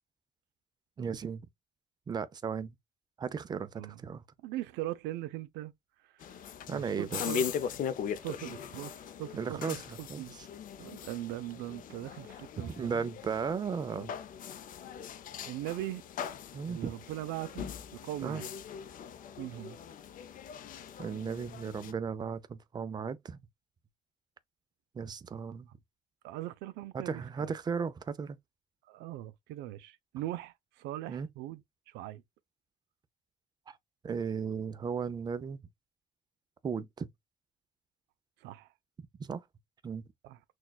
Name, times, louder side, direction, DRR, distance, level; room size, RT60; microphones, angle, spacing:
voice 1, 1.0-1.4 2.1-2.7 3.2-3.7 4.0-4.2 6.7-7.3 9.4-9.8 10.1-10.5 12.6-14.1 16.5-16.9 18.2-18.4 21.0-23.4 24.9-25.7 26.9-28.4 31.1-31.3 33.7-33.8 34.0-35.6 36.6-37.1 39.2-39.4 39.8-40.0, right 6 dB, 25° right, 0.4 m, -35 dB
voice 2, 4.4-5.7 6.7-7.4 8.2-10.4 10.8-13.1 15.5-16.0 16.7-17.7 18.0-18.5 19.4-19.8 26.2-27.5 28.9-32.2 38.4-38.7 40.2-40.4, right 15 dB, 90° right, 0.4 m, -40 dB
sound 1, 6.2-21.9, left 7 dB, 55° left, 0.5 m, -40 dB
6.1 x 2.3 x 2.3 m
cardioid pair, 110°, 17 cm